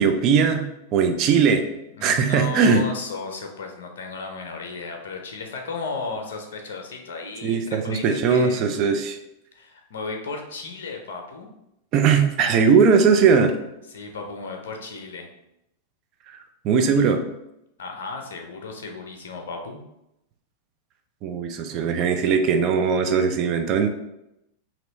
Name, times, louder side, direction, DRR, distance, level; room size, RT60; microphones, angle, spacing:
voice 1, 0.0-1.6 2.0-2.8 7.4-9.2 11.9-13.5 16.6-17.2 21.2-23.9, right 6 dB, 40° right, 6 dB, 0.5 m, -19 dB
voice 2, 1.9-8.9 9.5-11.5 13.9-15.3 17.8-19.8, left 4 dB, 60° left, 3 dB, 0.7 m, -34 dB
3.0 x 2.9 x 4.1 m, 0.85 s
figure-of-eight pair, 90°, 0 cm